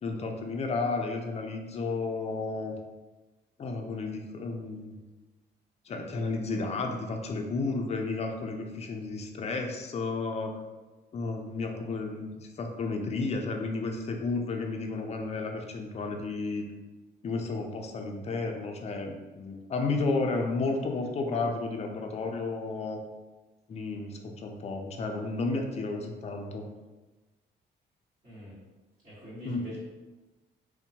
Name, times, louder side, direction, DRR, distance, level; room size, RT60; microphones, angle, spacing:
voice 1, 0.0-2.7 3.6-5.0 5.9-10.6 11.1-16.7 17.2-23.0 23.7-26.7 29.5-29.6, left 3 dB, 35° left, 3 dB, 0.4 m, -32 dB
voice 2, 28.2-28.5 29.0-29.8, equal, 40° right, -13 dB, 1.5 m, -43 dB
2.6 x 2.1 x 2.7 m, 1.2 s
cardioid pair, 90°, 20 cm